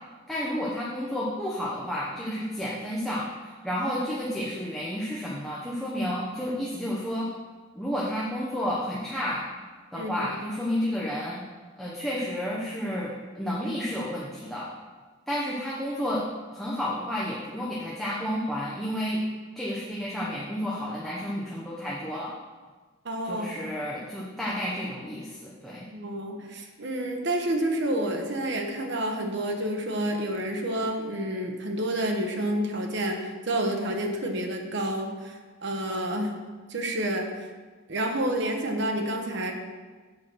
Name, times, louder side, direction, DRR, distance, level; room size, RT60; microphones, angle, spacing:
voice 1, 0.3-7.3 7.7-9.5 9.9-11.4 11.8-14.7 15.3-19.2 19.5-22.3 23.2-25.9, equal, ahead, -6 dB, 0.9 m, -31 dB
voice 2, 9.9-10.3 23.0-23.5 25.9-36.3 36.7-37.3 37.9-39.5, right 1 dB, 60° right, 3 dB, 1.0 m, -29 dB
7.6 x 4.7 x 6.1 m, 1.4 s
head